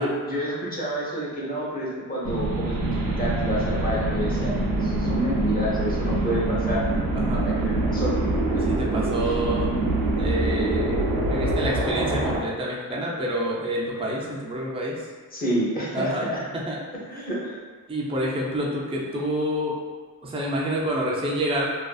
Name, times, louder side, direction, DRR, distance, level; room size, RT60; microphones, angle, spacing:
voice 1, 0.0-6.8 7.3-8.2 8.5-8.6 9.2-9.5 15.3-16.4 17.1-17.5, equal, 25° left, -6 dB, 0.7 m, -29 dB
sound 1, 2.2-12.4, right 2 dB, 85° right, 0.5 m, -25 dB
voice 2, 7.1-7.4 8.7-9.7 10.2-11.0 11.3-15.0 15.9-16.3 16.5-16.8 17.9-19.7 20.2-21.6, right 1 dB, 15° right, -4 dB, 0.4 m, -28 dB
2.5 x 2.3 x 2.3 m, 1.4 s
wide cardioid pair, 105°, 34 cm